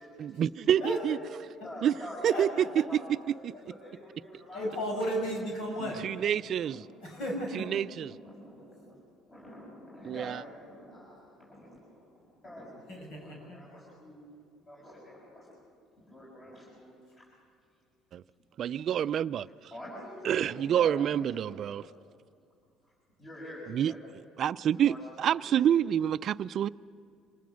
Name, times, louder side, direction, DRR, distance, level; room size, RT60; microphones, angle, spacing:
voice 1, 0.2-1.2 1.8-1.9 2.2-2.7 2.9-3.2 3.4-3.5 5.8-6.9 7.5-8.1 10.0-10.4 18.1-18.2 18.6-19.5 20.2-21.8 23.7-23.9 24.4-26.7, right 9 dB, 50° right, 0.4 m, -28 dB
voice 2, 0.8-5.0 6.6-6.9 8.1-9.0 9.3-14.3 14.7-15.5 16.0-17.2 19.7-21.9 23.2-24.0 24.7-25.2 25.7-25.9, left 1 dB, 30° left, 6.5 m, -46 dB
voice 3, 2.2-2.8 4.5-6.0 7.0-7.7 12.9-13.6, equal, 75° left, 6.3 m, -34 dB
26.0 x 19.5 x 6.3 m
cardioid pair, 115°, 0 cm